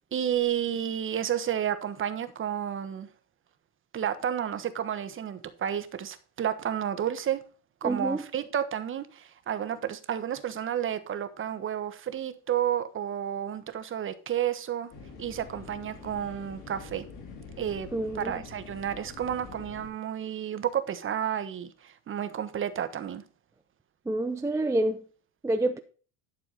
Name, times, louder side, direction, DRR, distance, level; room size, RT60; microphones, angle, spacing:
voice 1, 0.1-3.1 3.9-7.4 7.8-14.9 15.2-17.0 17.6-17.9 18.1-23.2, right 9 dB, 30° right, 1.2 m, -31 dB
voice 2, 7.8-8.2 17.9-18.3 24.1-25.0 25.4-25.8, right 2 dB, 5° right, 0.6 m, -27 dB
sound 1, 14.9-19.9, left 4 dB, 50° left, 4.8 m, -45 dB
11.5 x 6.8 x 4.0 m
cardioid pair, 145°, 40 cm